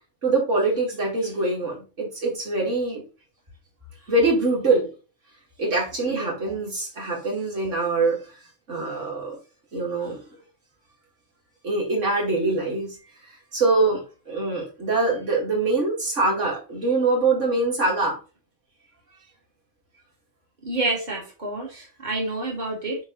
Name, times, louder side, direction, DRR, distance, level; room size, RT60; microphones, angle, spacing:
voice 1, 0.2-3.0 4.1-4.9 5.6-8.2 8.7-9.4 9.7-10.2 11.6-13.0 13.5-18.2, right 3 dB, 80° right, -2 dB, 2.9 m, -24 dB
voice 2, 6.1-6.6 10.0-10.1 20.7-23.0, right 2 dB, 40° right, -2 dB, 2.4 m, -29 dB
9.4 x 3.4 x 4.0 m, 0.33 s
omnidirectional pair, 1.2 m